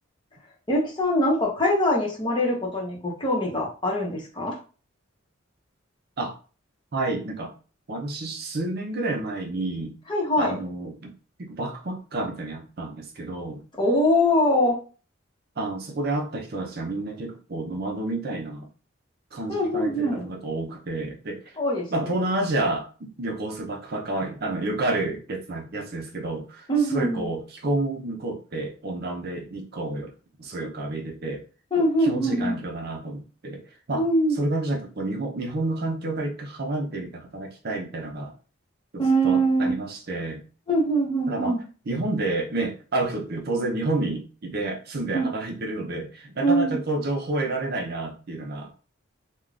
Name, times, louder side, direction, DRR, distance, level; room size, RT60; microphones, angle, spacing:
voice 1, 0.7-4.6 10.1-10.6 13.8-14.8 19.5-20.3 21.6-22.1 26.7-27.3 31.7-32.6 33.9-34.4 39.0-39.7 40.7-41.6 45.1-45.3 46.4-46.8, equal, 25° left, -3 dB, 0.9 m, -23 dB
voice 2, 6.9-7.5 7.9-10.0 10.4-11.1 11.4-13.6 15.6-18.7 19.3-21.6 21.9-30.1 30.4-31.4 31.8-33.6 33.9-34.0 34.3-38.4 38.9-40.4 41.3-41.6 41.9-48.7, right 2 dB, 50° right, 2 dB, 0.6 m, -30 dB
3.6 x 2.2 x 2.4 m, 0.36 s
head